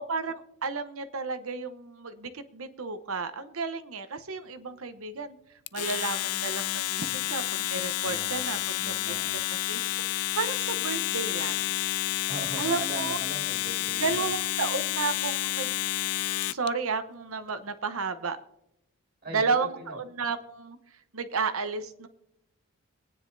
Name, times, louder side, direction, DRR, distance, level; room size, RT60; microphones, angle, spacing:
voice 1, 0.0-5.4 5.7-9.4 9.7-9.8 10.1-11.7 12.6-13.2 14.0-15.8 16.5-18.4 19.3-20.8 21.1-22.1, right 4 dB, 70° right, 9 dB, 0.9 m, -32 dB
Domestic sounds home sounds, 5.7-16.7, left 16 dB, 80° left, 0.3 m, -30 dB
voice 2, 8.0-9.4 12.3-14.3 19.2-20.0, right 1 dB, 45° right, 1 dB, 2.1 m, -40 dB
23.5 x 9.7 x 2.7 m, 0.83 s
head